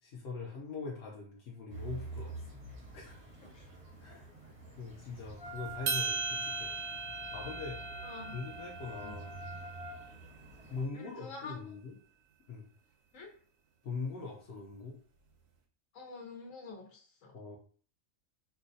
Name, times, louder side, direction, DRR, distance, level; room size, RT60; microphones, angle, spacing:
voice 1, 0.0-2.4 2.9-3.1 4.0-4.3 4.8-6.7 7.3-7.8 8.3-9.5 10.7-12.0 12.5-12.6 13.8-15.0 17.3-17.6, left 4 dB, 60° left, -2 dB, 0.8 m, -42 dB
sound 1, 1.7-10.8, right 2 dB, 30° right, 0.8 m, -48 dB
Wind instrument woodwind instrument, 5.4-10.0, equal, 35° left, 0.4 m, -46 dB
sound 2, 5.9-10.3, right 4 dB, 65° right, 0.8 m, -38 dB
voice 2, 8.0-8.4 9.0-9.1 10.9-11.7 13.1-13.3 15.9-17.3, left 4 dB, 85° left, 0 dB, 1.2 m, -47 dB
4.5 x 2.1 x 2.7 m, 0.43 s
omnidirectional pair, 1.4 m